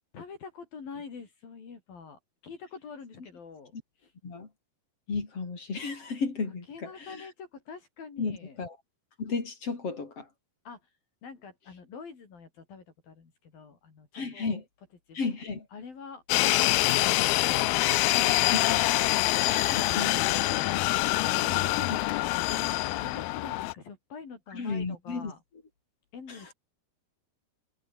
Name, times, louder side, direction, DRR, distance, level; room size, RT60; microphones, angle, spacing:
voice 1, 0.1-4.1 6.7-8.6 10.6-10.9 11.2-14.6 15.1-15.2 15.7-18.5 21.3-25.4 26.1-26.5, left 5 dB, 65° left, 6.4 m, -45 dB
voice 2, 5.1-7.2 8.2-8.8 9.2-10.3 14.1-14.6 15.1-15.7 18.5-18.6 19.3-20.7 21.8-22.0 24.5-25.3, left 4 dB, 40° left, 4.9 m, -34 dB
sound 1, 16.3-23.7, left 19 dB, 85° left, 2.7 m, -25 dB
omnidirectional pair, 4.4 m